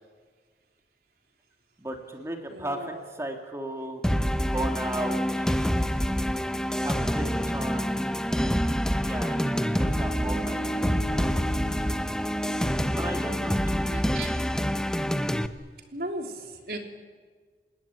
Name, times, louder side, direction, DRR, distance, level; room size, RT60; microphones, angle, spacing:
voice 1, 1.8-4.0 4.3-5.6 6.8-8.0 9.0-9.4 9.7-11.3 12.9-13.6, right 1 dB, 15° right, 3 dB, 2.9 m, -36 dB
voice 2, 2.5-3.0 13.9-14.3 15.9-16.8, right 2 dB, 60° right, 2 dB, 3.6 m, -36 dB
sound 1, 4.0-15.5, equal, 5° left, 0.8 m, -26 dB
27.5 x 20.0 x 9.2 m, 1.5 s
head